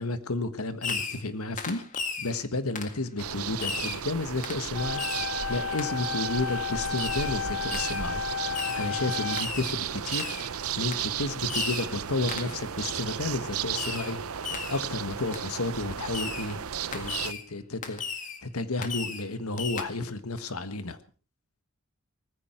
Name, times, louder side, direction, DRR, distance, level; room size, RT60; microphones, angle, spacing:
voice 1, 0.0-1.8 2.2-5.0 5.5-8.2 8.7-10.3 10.8-14.2 14.7-16.6 16.9-18.0 18.4-21.0, left 2 dB, 80° left, 1.6 m, -32 dB
Fireworks, 0.8-1.3 1.6-2.3 2.8-3.0 3.6-4.0 4.4-4.6 5.0-5.3 5.8-5.9 7.0-7.3 7.7-8.1 8.5-8.9 9.4-9.8 10.1-10.5 10.9-11.1 11.5-11.9 12.3-12.6 13.8-14.2 14.4-14.8 15.3-15.5 16.1-16.5 16.9-17.4 17.8-18.4 18.8-19.3 19.6-19.8, left 5 dB, 35° left, 2.0 m, -35 dB
sound 1, 3.2-17.3, right 8 dB, 80° right, 0.7 m, -34 dB
sound 2, 4.7-9.7, left 7 dB, 55° left, 1.4 m, -33 dB
19.0 x 15.5 x 4.6 m
head